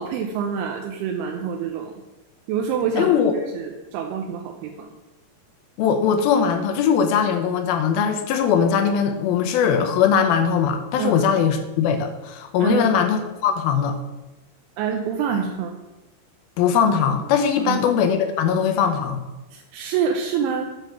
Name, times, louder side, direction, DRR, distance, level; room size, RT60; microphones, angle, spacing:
voice 1, 0.0-1.9 2.5-3.1 3.5-4.9 11.0-11.3 12.6-13.0 14.8-15.7 17.6-17.8 19.5-20.7, right 6 dB, 90° right, 3 dB, 2.7 m, -26 dB
voice 2, 3.0-3.3 5.8-14.0 16.6-19.2, left 7 dB, 80° left, 7 dB, 2.5 m, -20 dB
8.0 x 6.2 x 5.8 m, 1.1 s
omnidirectional pair, 4.5 m